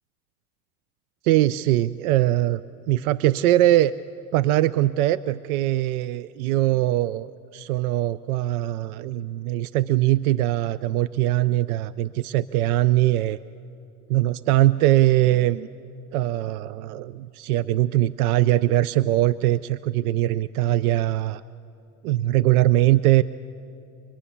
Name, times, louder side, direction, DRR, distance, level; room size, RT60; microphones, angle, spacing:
voice 1, 1.2-2.6 2.9-3.9 4.3-13.4 14.1-15.7 16.1-21.4 22.0-23.2, right 15 dB, 85° right, 17 dB, 0.5 m, -21 dB
24.5 x 21.5 x 6.9 m, 2.9 s
supercardioid pair, 115°, 43 cm